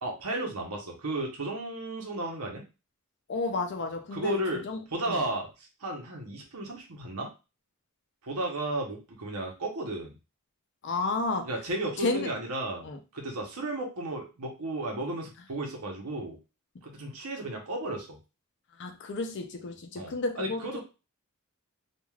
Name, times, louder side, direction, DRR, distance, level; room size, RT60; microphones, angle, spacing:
voice 1, 0.0-2.6 4.1-4.6 4.9-7.3 8.2-10.2 11.5-12.8 13.1-16.4 16.8-18.2 19.9-20.8, right 2 dB, 90° right, 0.9 m, -34 dB
voice 2, 3.3-5.2 10.8-11.5 12.0-12.3 12.8-13.0 18.8-20.8, left 3 dB, 50° left, 0.5 m, -32 dB
3.2 x 2.4 x 2.3 m
head